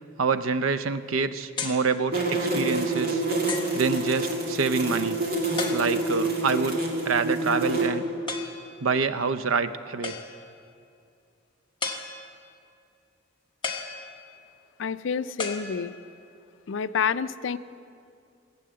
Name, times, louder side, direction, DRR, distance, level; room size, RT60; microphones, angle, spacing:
voice 1, 0.2-3.2 3.7-5.2 5.7-6.8 7.1-8.0 8.8-10.1, right 4 dB, 80° right, 12 dB, 0.6 m, -26 dB
sound 1, 1.6-1.9 2.6-2.7 3.5-3.8 5.6-6.2 8.3-8.7 10.0-10.5 11.8-12.5 13.6-14.5 15.4-16.2, left 4 dB, 25° left, 1.2 m, -34 dB
sound 2, 2.1-7.9, right 2 dB, 50° right, 2.3 m, -27 dB
voice 2, 14.8-15.9 16.7-17.6, left 6 dB, 65° left, 14 dB, 0.5 m, -28 dB
18.5 x 8.5 x 7.6 m, 2.4 s
head